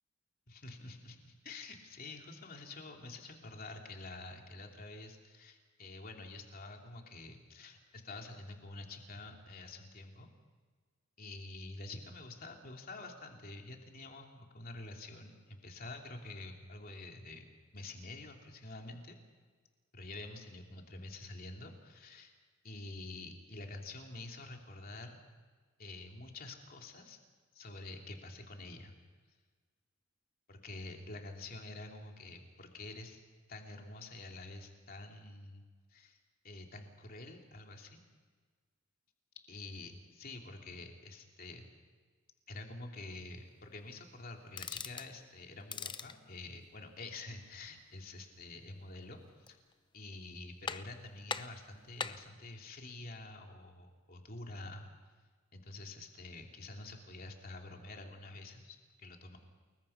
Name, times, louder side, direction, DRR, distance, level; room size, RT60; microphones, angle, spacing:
voice 1, 0.5-10.3 11.2-19.2 19.9-22.3 22.6-25.2 25.8-27.2 27.5-28.9 30.5-33.2 33.5-35.6 35.9-36.2 36.4-38.0 39.5-41.7 42.5-49.6 49.9-54.9 55.5-59.4, left 2 dB, 45° left, 2 dB, 3.0 m, -48 dB
sound 1, 44.5-45.1 45.6-46.2 49.2-49.7 50.1-50.2 50.7-51.0 51.3-52.3, left 5 dB, 25° left, 0.7 m, -41 dB
29.5 x 22.0 x 5.8 m, 1.5 s
head